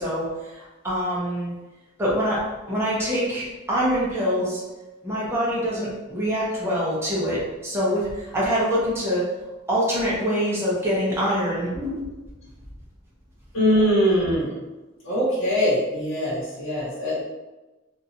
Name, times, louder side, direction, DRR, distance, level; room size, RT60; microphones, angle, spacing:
voice 1, 0.0-1.5 2.0-2.4 2.7-4.6 5.0-9.2 9.7-12.2, equal, 10° right, -7 dB, 0.8 m, -25 dB
voice 2, 13.5-14.6 15.0-17.2, equal, 70° left, -9 dB, 1.1 m, -22 dB
2.8 x 2.5 x 2.7 m, 1.1 s
head